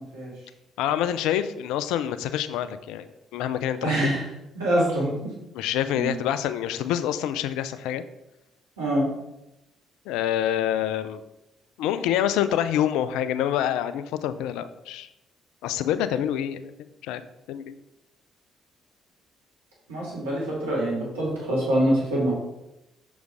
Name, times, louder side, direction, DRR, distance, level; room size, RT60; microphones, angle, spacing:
voice 1, 0.8-4.1 5.5-8.0 10.1-11.2 11.8-15.1 15.6-16.7 17.0-17.2 17.5-17.8, left 10 dB, 75° left, 13 dB, 0.4 m, -26 dB
voice 2, 3.8-4.2 4.5-5.3 5.9-6.2 8.8-9.1 19.9-22.3, right 1 dB, 85° right, -5 dB, 2.7 m, -25 dB
6.4 x 5.1 x 4.7 m, 0.91 s
hypercardioid pair, 50°, 0 cm